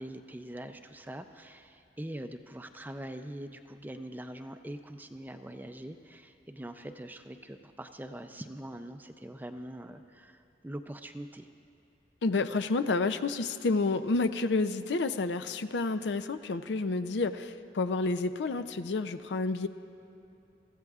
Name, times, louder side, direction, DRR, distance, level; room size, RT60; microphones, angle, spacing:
voice 1, 0.0-11.5, right 1 dB, 10° right, 7 dB, 0.4 m, -43 dB
voice 2, 12.2-19.7, left 3 dB, 85° left, 11 dB, 0.5 m, -29 dB
24.0 x 15.0 x 2.4 m, 2.8 s
head